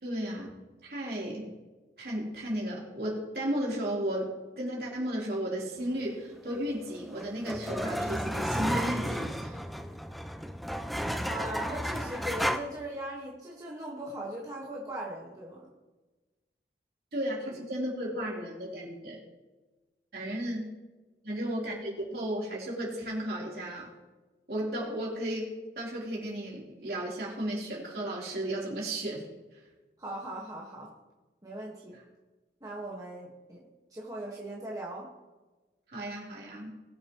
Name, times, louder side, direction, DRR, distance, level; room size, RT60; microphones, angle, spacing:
voice 1, 0.0-0.5 0.8-1.5 2.0-9.6 17.1-19.2 20.1-20.6 21.2-23.9 24.5-29.2 35.9-36.7, right 1 dB, 65° right, -4 dB, 3.8 m, -34 dB
sound 1, 6.7-12.6, equal, ahead, 0.5 m, -33 dB
voice 2, 11.3-15.7 30.0-30.9 31.4-32.0 32.6-33.6 33.9-35.1, right 1 dB, 20° right, -4 dB, 1.6 m, -39 dB
21.0 x 7.3 x 3.1 m, 1.2 s
head